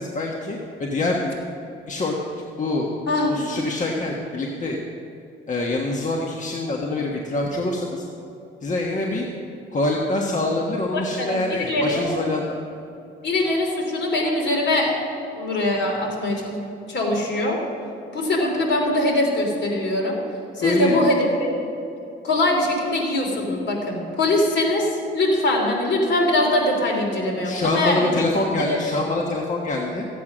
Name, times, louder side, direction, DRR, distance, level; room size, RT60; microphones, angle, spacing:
voice 1, 0.0-1.4 1.9-2.2 2.6-2.9 3.2-4.8 5.5-8.0 8.6-9.3 9.7-12.6 20.6-21.0 27.4-30.1, left 2 dB, 40° left, 0 dB, 1.4 m, -25 dB
voice 2, 3.1-3.4 10.9-12.0 13.2-14.9 15.4-16.6 16.9-17.6 18.1-20.2 20.6-21.5 22.2-28.1 28.7-28.8, left 1 dB, 60° left, 0 dB, 3.4 m, -22 dB
15.0 x 8.4 x 6.2 m, 2.9 s
cardioid pair, 90°, 20 cm